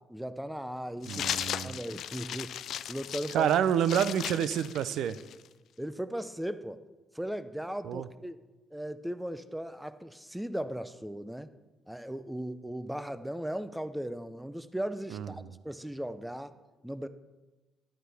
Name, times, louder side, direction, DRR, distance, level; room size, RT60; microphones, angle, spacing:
voice 1, 0.0-2.5 2.9-3.5 5.8-6.8 7.1-8.4 8.7-11.5 11.9-16.5 16.8-17.1, right 1 dB, 5° right, 13 dB, 0.5 m, -37 dB
sound 1, 1.0-5.5, left 10 dB, 75° left, 0.3 m, -37 dB
voice 2, 1.1-1.8 3.3-5.2 7.8-8.1 15.1-15.5, right 9 dB, 80° right, 14 dB, 0.4 m, -28 dB
11.5 x 9.4 x 3.4 m, 1.1 s
cardioid pair, 90°, 0 cm